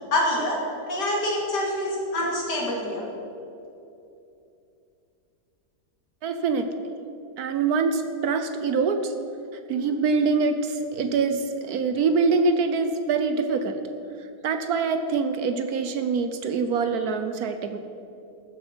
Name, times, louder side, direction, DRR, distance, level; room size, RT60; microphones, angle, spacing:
voice 1, 0.1-0.6 0.9-3.1, left 1 dB, 80° left, -2 dB, 3.0 m, -26 dB
voice 2, 6.2-6.6 7.4-9.1 9.7-13.8 14.4-17.8, right 4 dB, 70° right, 8 dB, 1.1 m, -24 dB
13.5 x 7.5 x 6.1 m, 2.7 s
omnidirectional pair, 1.8 m